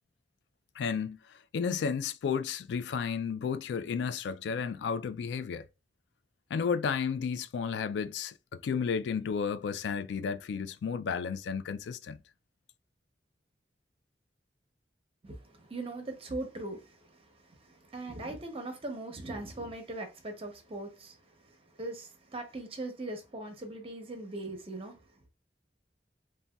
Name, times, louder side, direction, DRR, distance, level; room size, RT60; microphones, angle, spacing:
voice 1, 0.8-5.6 6.5-12.2, left 6 dB, 75° left, 0.3 m, -32 dB
voice 2, 15.2-25.0, right 2 dB, 35° right, 0.7 m, -40 dB
3.8 x 2.2 x 2.2 m
head